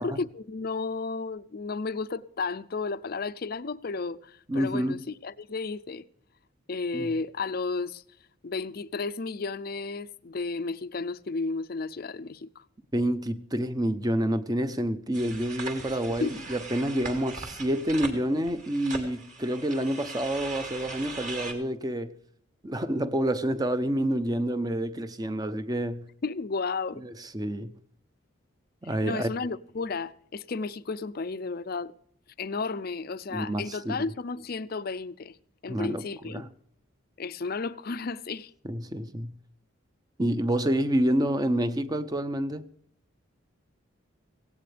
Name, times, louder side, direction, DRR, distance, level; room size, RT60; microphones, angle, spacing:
voice 1, 0.0-6.0 6.7-8.0 8.4-12.6 16.2-16.4 26.2-27.0 28.8-31.9 32.4-35.4 35.6-36.4 37.2-38.5, left 4 dB, 45° left, 0.5 m, -33 dB
voice 2, 4.5-5.0 6.9-7.1 12.9-22.1 22.6-26.0 27.0-27.7 28.8-29.3 33.3-34.0 35.7-36.5 38.6-39.3 40.2-42.7, right 1 dB, 20° right, 0.7 m, -28 dB
sound 1, 15.1-21.5, right 3 dB, 40° right, 2.4 m, -40 dB
17.0 x 17.0 x 3.4 m
head